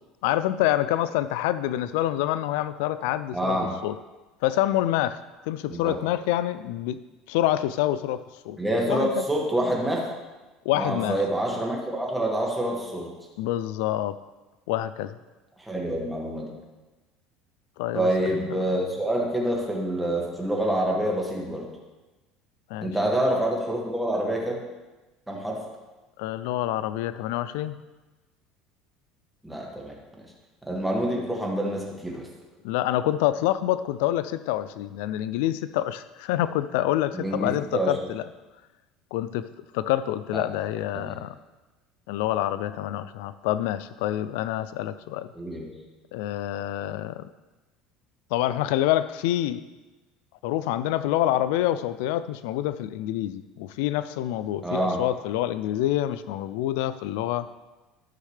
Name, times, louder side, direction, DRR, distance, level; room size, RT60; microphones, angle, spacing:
voice 1, 0.2-3.9 4.4-5.2 5.5-7.0 7.3-8.6 8.9-9.2 10.7-11.2 13.4-14.2 14.7-15.2 17.8-18.1 22.7-22.9 26.2-27.8 32.6-38.2 39.1-39.4 39.7-41.3 42.1-45.3 46.1-47.3 48.3-49.6 50.4-57.5, left 13 dB, 80° left, 14 dB, 0.3 m, -27 dB
voice 2, 3.3-3.7 5.7-5.9 8.6-10.1 10.7-13.1 15.6-16.5 17.9-21.7 22.8-24.6 25.3-25.6 29.4-29.9 30.7-32.3 37.1-37.9 40.3-40.4 41.1-41.2 45.4-45.7 54.6-55.0, right 1 dB, 5° right, -2 dB, 2.0 m, -27 dB
13.0 x 6.3 x 3.3 m, 1.2 s
supercardioid pair, 125°, 0 cm